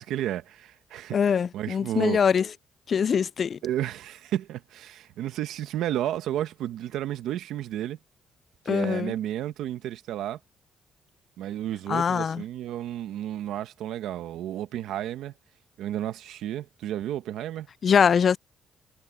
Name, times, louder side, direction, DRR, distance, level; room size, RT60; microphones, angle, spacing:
voice 1, 0.0-1.2 1.5-2.2 3.6-8.0 8.6-10.4 11.4-15.3 15.8-17.7, right 12 dB, 85° right, 1.3 m, -32 dB
voice 2, 1.1-2.5 2.9-3.6 8.7-9.1 11.9-12.4 17.8-18.4, left 7 dB, 50° left, 0.3 m, -23 dB
cardioid pair, 90°, 0 cm